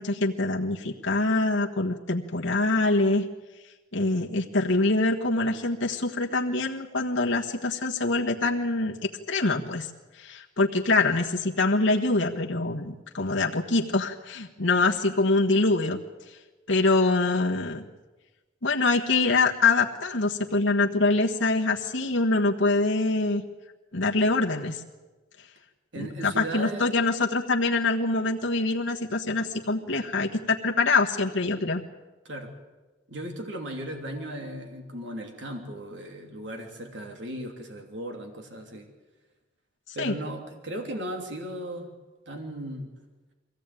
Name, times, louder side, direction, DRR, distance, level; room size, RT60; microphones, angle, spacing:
voice 1, 0.0-3.3 3.9-9.0 9.3-9.9 10.2-16.0 16.7-17.8 18.6-23.4 23.9-24.8 26.0-31.8 39.9-40.1, left 3 dB, 75° left, 0 dB, 1.4 m, -24 dB
voice 2, 25.9-26.9 32.2-32.5 33.1-38.9 39.9-41.9 42.3-42.9, right 1 dB, 65° right, 3 dB, 3.0 m, -36 dB
22.5 x 16.5 x 9.1 m, 1.2 s
head